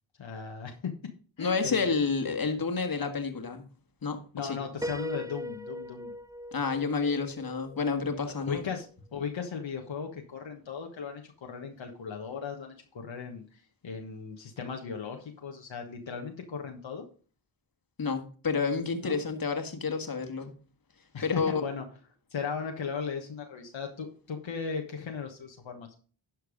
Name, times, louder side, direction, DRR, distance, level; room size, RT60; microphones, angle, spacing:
voice 1, 0.2-1.0 1.4-2.0 4.3-6.1 8.4-17.1 19.0-19.2 21.1-21.8 22.3-25.9, left 6 dB, 70° left, 2 dB, 1.5 m, -37 dB
voice 2, 1.4-3.6 4.0-4.6 6.5-8.7 18.0-20.5 21.2-21.7, left 4 dB, 45° left, 6 dB, 1.9 m, -30 dB
Piano, 4.8-8.6, equal, 5° right, 0.7 m, -40 dB
12.0 x 4.6 x 5.1 m, 0.39 s
cardioid pair, 50°, 48 cm